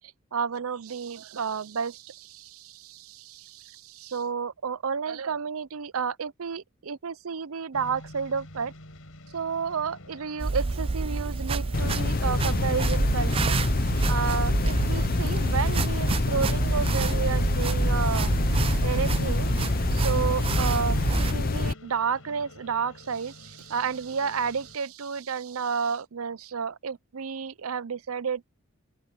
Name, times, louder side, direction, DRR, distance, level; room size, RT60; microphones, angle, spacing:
voice 1, 0.3-8.7 9.3-13.6 14.1-18.3 18.8-19.5 19.9-28.5, right 6 dB, 75° right, 0.6 m, -31 dB
sound 1, 7.7-24.8, left 1 dB, 70° left, 4.9 m, -46 dB
sound 2, 10.4-21.3, right 3 dB, 25° right, 0.3 m, -28 dB
sound 3, 11.7-21.7, left 3 dB, 40° left, 0.6 m, -27 dB
open air
head